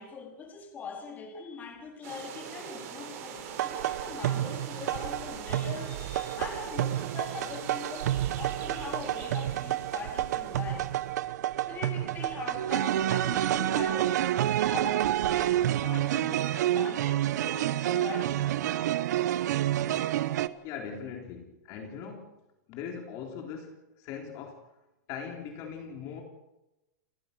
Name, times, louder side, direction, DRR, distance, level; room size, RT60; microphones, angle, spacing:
voice 1, 0.0-10.9 11.7-18.5, left 5 dB, 20° left, 2 dB, 4.1 m, -42 dB
sound 1, 2.0-11.3, right 7 dB, 55° right, 7.6 m, -43 dB
sound 2, 3.6-20.5, right 12 dB, 70° right, 1.1 m, -29 dB
voice 2, 20.6-22.3 22.7-24.7 25.1-26.2, left 7 dB, 35° left, 3 dB, 3.7 m, -40 dB
29.0 x 14.5 x 6.8 m, 0.93 s
supercardioid pair, 165°, 9 cm